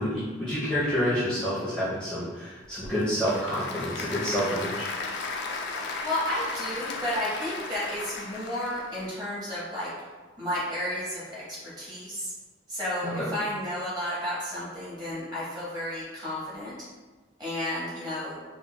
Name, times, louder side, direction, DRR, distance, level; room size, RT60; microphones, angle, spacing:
voice 1, 0.0-4.9 13.2-13.3, equal, 5° left, -12 dB, 0.6 m, -28 dB
Applause / Crowd, 2.6-9.1, left 3 dB, 60° left, 0.3 m, -35 dB
voice 2, 6.0-9.9 10.4-12.3 12.7-16.7 17.4-18.4, left 1 dB, 20° right, -10 dB, 1.2 m, -32 dB
3.8 x 2.2 x 2.2 m, 1.3 s
head